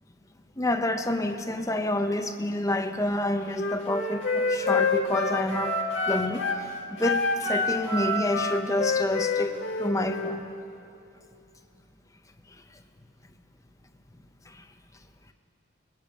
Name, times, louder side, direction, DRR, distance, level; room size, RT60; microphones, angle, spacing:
voice 1, 0.6-5.7 6.1-6.7 7.0-10.5 14.5-14.6, left 1 dB, 15° left, 6 dB, 0.7 m, -28 dB
Wind instrument woodwind instrument, 3.5-6.6 7.0-10.4, left 3 dB, 70° left, 1.6 m, -27 dB
21.5 x 10.5 x 5.3 m, 2.7 s
head